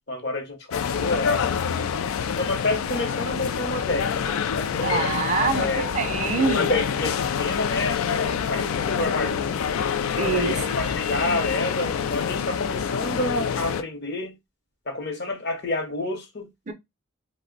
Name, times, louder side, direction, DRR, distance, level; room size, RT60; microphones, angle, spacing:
voice 1, 0.1-2.1 2.4-5.1 5.6-6.0 6.5-9.8 10.3-14.3 14.9-16.5, left 2 dB, 50° left, 0.8 m, -29 dB
sound 1, 0.7-13.8, left 7 dB, 80° left, 0.3 m, -26 dB
voice 2, 4.8-6.7 10.2-10.6 16.7-16.8, right 5 dB, 35° right, 0.4 m, -25 dB
2.5 x 2.1 x 3.8 m
head